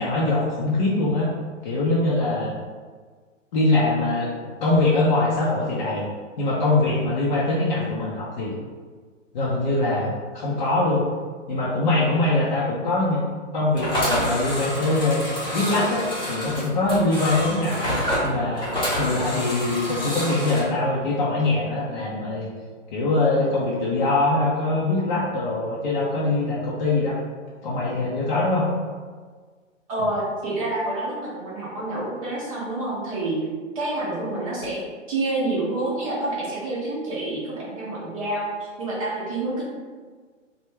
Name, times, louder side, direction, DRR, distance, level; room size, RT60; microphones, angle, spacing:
voice 1, 0.0-1.3 1.6-2.6 3.5-6.0 6.4-8.5 9.3-11.0 11.5-13.2 13.5-15.2 15.5-17.9 18.2-18.7 19.0-22.5 22.9-27.2 27.6-28.7, left 2 dB, 40° left, -6 dB, 0.5 m, -23 dB
sound 1, 13.7-20.6, equal, 10° left, 0.8 m, -27 dB
voice 2, 29.9-33.4 33.7-34.8 35.1-39.6, right 2 dB, 30° right, -5 dB, 0.5 m, -28 dB
3.3 x 2.2 x 3.2 m, 1.5 s
hypercardioid pair, 140°, 38 cm